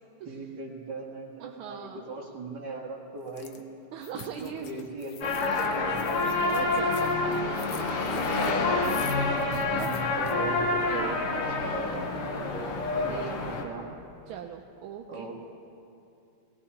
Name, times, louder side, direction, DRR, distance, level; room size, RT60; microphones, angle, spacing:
voice 1, 0.3-3.6 4.1-6.0 8.4-9.4 10.1-12.4 12.9-14.0 15.1-15.3, right 3 dB, 50° right, -3 dB, 2.5 m, -40 dB
voice 2, 1.4-2.1 3.9-4.7 6.3-7.3 7.7-8.7 9.5-10.0 10.4-10.6 10.8-11.2 13.1-13.4 14.3-15.3, right 9 dB, 80° right, 2 dB, 1.5 m, -39 dB
sound 1, 3.3-3.6 4.0-10.3, left 6 dB, 60° left, 1.1 m, -46 dB
sound 2, 5.2-13.6, left 3 dB, 85° left, 2.1 m, -28 dB
22.0 x 17.5 x 2.9 m, 2.7 s
omnidirectional pair, 2.3 m